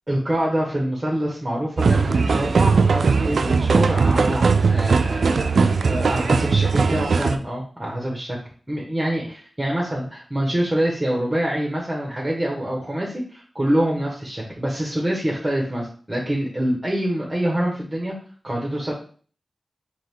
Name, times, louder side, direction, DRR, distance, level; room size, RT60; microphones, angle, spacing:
voice 1, 0.1-8.4 8.7-18.1 18.4-18.9, right 1 dB, 20° right, -3 dB, 1.2 m, -25 dB
sound 1, 1.8-7.4, right 4 dB, 80° right, 0.3 m, -19 dB
3.9 x 2.9 x 3.4 m, 0.42 s
cardioid pair, 50°, 0 cm